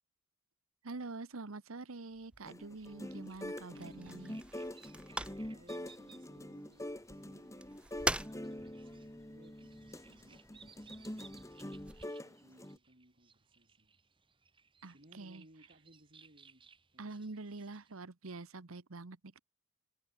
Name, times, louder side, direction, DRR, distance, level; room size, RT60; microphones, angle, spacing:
voice 1, 0.8-4.4 14.8-15.4 17.0-19.4, right 3 dB, 75° right, 1.1 m, -46 dB
sound 1, 2.1-12.1, right 1 dB, 5° right, 0.5 m, -45 dB
sound 2, 2.5-12.8, left 1 dB, 15° left, 2.1 m, -45 dB
sound 3, 2.8-18.0, right 5 dB, 25° right, 4.9 m, -63 dB
voice 2, 5.5-11.7 12.1-14.2 14.9-17.3, right 1 dB, 40° right, 4.1 m, -64 dB
head